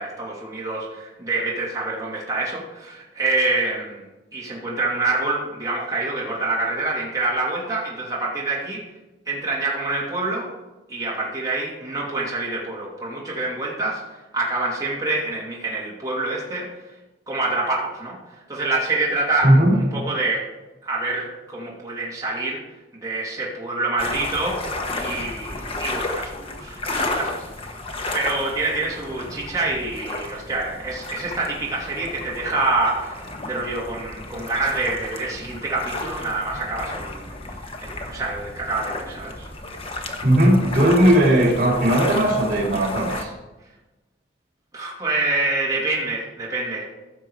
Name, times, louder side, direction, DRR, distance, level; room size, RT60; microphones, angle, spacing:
voice 1, 0.0-4.0 4.3-8.8 9.3-10.5 10.9-14.0 14.3-16.7 17.3-18.2 18.5-19.5 19.9-20.4 20.8-22.6 23.0-24.7 25.0-27.7 28.1-39.5 44.7-46.8, right 2 dB, 20° right, -5 dB, 2.8 m, -26 dB
voice 2, 19.4-19.8 40.2-43.3, right 1 dB, 45° right, -6 dB, 3.8 m, -17 dB
sound 1, 24.0-43.2, left 2 dB, 35° left, 1.2 m, -32 dB
15.5 x 6.7 x 4.9 m, 1.1 s
head